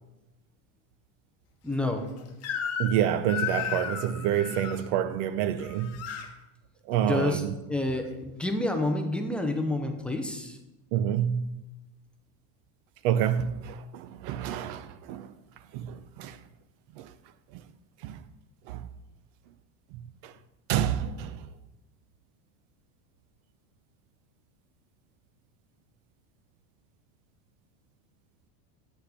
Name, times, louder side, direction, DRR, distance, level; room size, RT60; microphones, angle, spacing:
voice 1, 1.6-2.1 7.0-7.4 7.7-10.6, left 2 dB, 5° left, 0.3 m, -29 dB
Crying sobbing / Screech, 2.4-3.0 3.3-4.8 5.6-6.3, left 8 dB, 35° left, 0.9 m, -33 dB
voice 2, 2.8-6.0 6.9-7.5 10.9-11.6 13.0-15.3 15.7-16.4 17.0-17.1 18.0-18.2 18.7-18.9 19.9-20.3 20.7-21.5, right 10 dB, 65° right, 0.7 m, -28 dB
8.2 x 8.0 x 3.4 m
cardioid pair, 145°, 45 cm